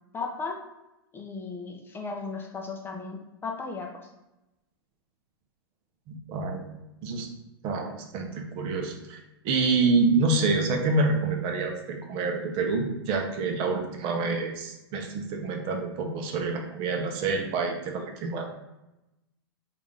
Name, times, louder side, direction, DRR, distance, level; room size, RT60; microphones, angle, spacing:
voice 1, 0.1-0.6 1.1-3.9, left 4 dB, 15° left, 1 dB, 0.4 m, -35 dB
voice 2, 6.1-6.7 7.0-7.3 7.6-18.4, right 3 dB, 40° right, 3 dB, 0.6 m, -27 dB
3.5 x 2.4 x 3.3 m, 0.94 s
hypercardioid pair, 105°, 13 cm